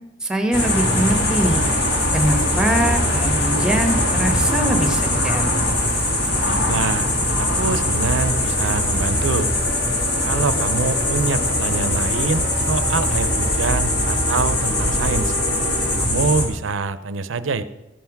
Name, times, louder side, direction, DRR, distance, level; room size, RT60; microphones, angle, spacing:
voice 1, 0.2-1.6 2.1-5.4, right 1 dB, 5° right, 6 dB, 1.0 m, -22 dB
sound 1, 0.5-16.5, left 1 dB, 60° left, 2.1 m, -21 dB
voice 2, 6.4-7.1 7.4-9.5 10.2-15.3 16.0-17.6, right 4 dB, 70° right, 14 dB, 0.6 m, -25 dB
sound 2, 8.2-16.0, equal, 85° left, 4.3 m, -32 dB
14.0 x 5.7 x 5.9 m, 0.99 s
head